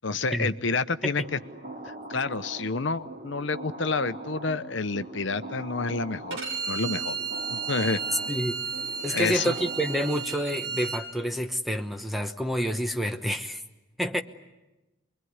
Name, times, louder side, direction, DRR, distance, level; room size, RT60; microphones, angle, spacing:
voice 1, 0.0-1.4 1.8-6.4 6.7-7.2 7.5-8.0 9.1-9.5, left 4 dB, 65° left, 12 dB, 0.9 m, -29 dB
sound 1, 1.2-10.6, right 2 dB, 40° right, 3.5 m, -42 dB
Bowed string instrument, 6.3-11.0, right 5 dB, 65° right, 6.7 m, -33 dB
voice 2, 8.3-8.6 9.0-13.6 14.0-14.2, equal, ahead, 6 dB, 0.9 m, -28 dB
25.0 x 23.0 x 9.6 m, 1.0 s
head